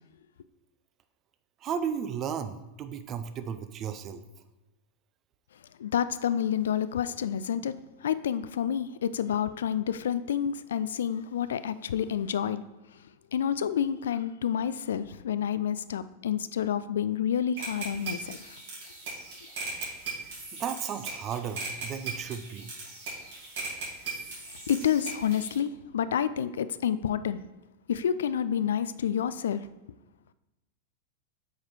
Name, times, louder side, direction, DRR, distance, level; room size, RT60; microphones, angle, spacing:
voice 1, 1.6-4.2 20.6-22.7, right 7 dB, 30° right, 0.6 m, -34 dB
voice 2, 5.8-7.7 8.0-12.6 12.9-13.0 13.3-18.6 24.7-27.4 27.9-29.7, left 9 dB, 65° left, 0.3 m, -29 dB
sound 1, 17.6-25.6, right 4 dB, 55° right, 2.6 m, -39 dB
8.0 x 4.8 x 4.4 m
figure-of-eight pair, 90°, 0 cm